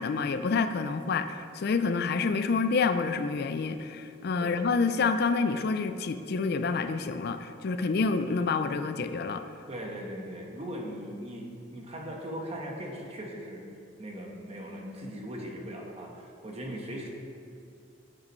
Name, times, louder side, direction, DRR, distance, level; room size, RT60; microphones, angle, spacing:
voice 1, 0.0-9.4, left 4 dB, 55° left, 9 dB, 0.4 m, -28 dB
voice 2, 9.7-13.6 14.0-17.1, equal, 35° right, 0 dB, 1.2 m, -39 dB
12.5 x 7.4 x 3.1 m, 2.4 s
head